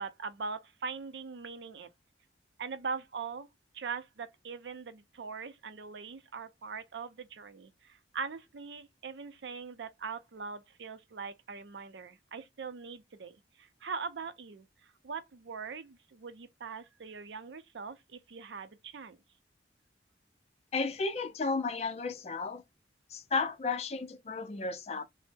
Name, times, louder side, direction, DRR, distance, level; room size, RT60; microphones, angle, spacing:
voice 1, 0.0-1.9 2.6-3.5 3.7-19.2, right 5 dB, 80° right, 0.5 m, -41 dB
voice 2, 20.7-22.6 23.1-25.0, left 4 dB, 35° left, 0.4 m, -33 dB
3.1 x 2.0 x 3.2 m
head